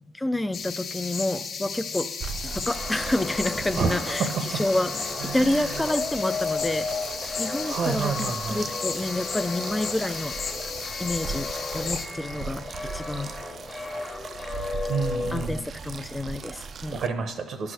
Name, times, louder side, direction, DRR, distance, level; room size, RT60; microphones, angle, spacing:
voice 1, 0.1-2.1 2.4-6.9 7.4-10.6 11.0-13.3 15.3-17.0, left 1 dB, 10° left, 13 dB, 0.4 m, -29 dB
sound 1, 0.5-12.1, left 5 dB, 65° left, 0.9 m, -34 dB
sound 2, 2.2-17.1, right 5 dB, 50° right, 0.4 m, -39 dB
sound 3, 2.7-15.6, left 3 dB, 30° left, 1.1 m, -35 dB
voice 2, 3.8-4.6 5.2-5.8 7.7-8.6 14.9-15.6 16.9-17.7, right 5 dB, 70° right, 7 dB, 0.8 m, -29 dB
10.5 x 4.8 x 6.2 m, 1.1 s
cardioid pair, 90°, 0 cm